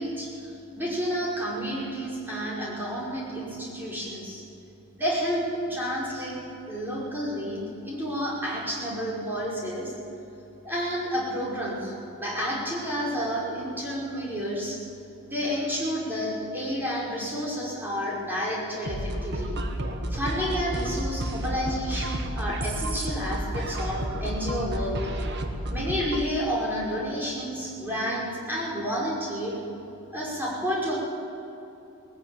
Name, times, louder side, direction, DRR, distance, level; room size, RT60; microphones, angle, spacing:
voice 1, 0.0-4.4 5.0-6.4 6.7-9.9 10.6-14.8 15.2-19.5 20.1-25.0 25.7-29.6 30.1-30.9, equal, 10° right, -6 dB, 5.5 m, -30 dB
sound 1, 18.9-26.3, right 1 dB, 55° right, 1.6 m, -31 dB
20.5 x 15.0 x 9.2 m, 2.9 s
head